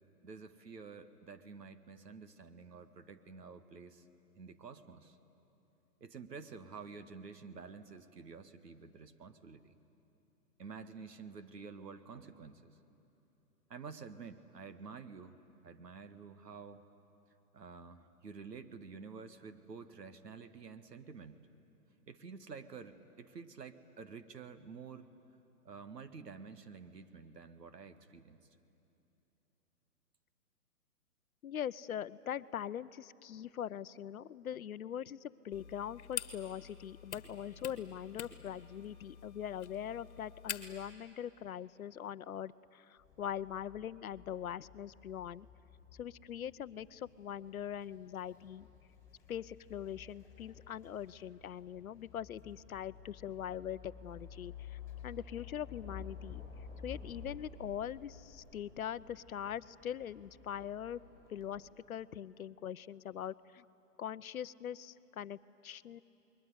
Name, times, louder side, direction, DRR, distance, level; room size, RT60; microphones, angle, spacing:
voice 1, 0.2-4.1 4.3-5.2 6.0-9.7 10.6-12.7 13.7-15.4 15.6-16.8 17.5-21.5 22.1-25.1 25.6-28.4, right 5 dB, 85° right, 10 dB, 1.8 m, -50 dB
voice 2, 31.4-45.5 46.0-48.7 49.3-56.4 56.8-61.0 61.3-63.7 64.0-65.4 65.6-66.0, left 9 dB, 60° left, 16 dB, 0.7 m, -42 dB
sound 1, 35.5-40.9, left 8 dB, 45° left, 1.8 m, -46 dB
sound 2, 43.0-61.7, left 6 dB, 5° left, 7.2 m, -53 dB
28.0 x 21.5 x 9.6 m, 3.0 s
hypercardioid pair, 160°, 47 cm